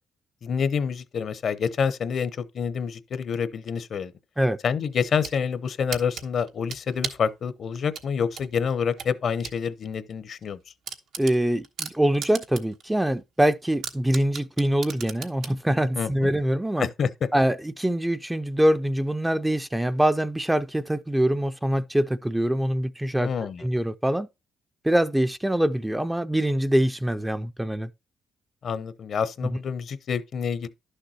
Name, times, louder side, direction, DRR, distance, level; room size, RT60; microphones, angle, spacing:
voice 1, 0.4-4.1 4.6-10.6 16.0-16.3 16.8-17.3 23.2-23.6 28.6-30.7, left 6 dB, 55° left, 0.7 m, -27 dB
sound 1, 4.9-5.4 5.9-7.3 7.9-9.6 10.0-10.1 10.4-10.5 10.9-12.8 13.2-13.3 13.8-15.6, right 6 dB, 80° right, 1.1 m, -35 dB
voice 2, 11.2-16.9 17.3-23.3 23.6-24.3 24.8-27.9, right 1 dB, 10° right, 0.4 m, -24 dB
11.0 x 6.6 x 2.8 m
cardioid pair, 90°, 0 cm